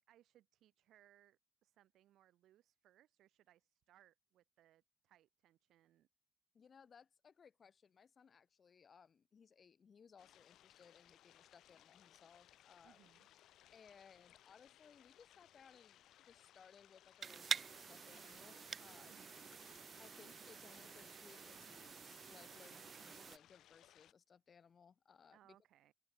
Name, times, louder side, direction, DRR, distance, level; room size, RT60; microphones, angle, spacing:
voice 1, 0.0-6.1 12.8-13.3 19.0-19.4 25.3-25.9, right 13 dB, 85° right, 4.6 m, -70 dB
voice 2, 6.5-13.1 13.7-19.3 20.0-25.6, left 6 dB, 35° left, 5.2 m, -64 dB
sound 1, 10.2-24.1, left 13 dB, 90° left, 2.6 m, -66 dB
sound 2, 17.2-23.4, right 6 dB, 35° right, 1.0 m, -47 dB
open air
cardioid pair, 170°, 0 cm